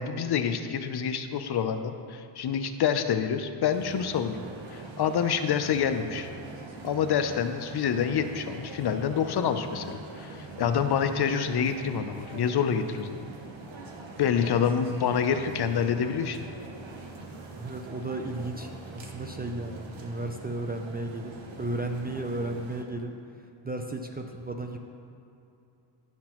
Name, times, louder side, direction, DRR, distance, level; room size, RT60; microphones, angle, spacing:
voice 1, 0.0-4.4 4.7-6.3 6.8-13.2 14.2-16.4, left 7 dB, 55° left, 9 dB, 0.5 m, -27 dB
sound 1, 3.7-22.8, right 3 dB, 70° right, 1.0 m, -43 dB
voice 2, 17.6-23.1 23.6-24.8, right 2 dB, 20° right, 3 dB, 0.3 m, -34 dB
11.0 x 5.9 x 2.9 m, 2.7 s
cardioid pair, 100°, 49 cm